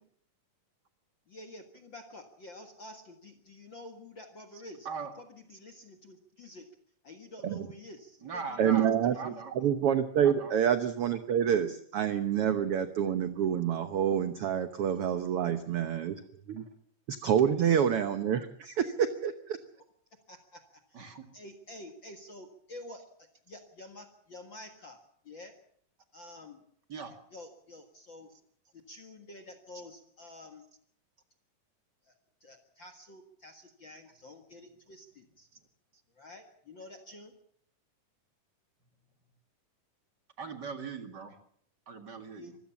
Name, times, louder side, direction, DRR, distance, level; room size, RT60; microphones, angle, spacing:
voice 1, 1.3-4.9 5.5-6.7 7.0-8.6 9.1-9.4 20.3-20.6 21.0-21.1 21.3-23.0 23.5-25.0 25.3-25.5 26.1-26.6 27.3-28.3 28.7-30.6 32.4-35.5 36.2-37.3 42.4-42.5, left 1 dB, 45° left, 5 dB, 1.9 m, -49 dB
voice 2, 4.5-5.1 5.5-5.6 8.2-9.5 10.2-10.5 20.9-21.3 26.9-27.2 40.4-41.3 41.9-42.6, right 5 dB, 35° right, 6 dB, 2.2 m, -40 dB
voice 3, 8.6-16.2 16.5-16.6 17.1-19.6, right 9 dB, 65° right, 9 dB, 1.4 m, -28 dB
25.5 x 16.0 x 7.2 m, 0.66 s
omnidirectional pair, 3.9 m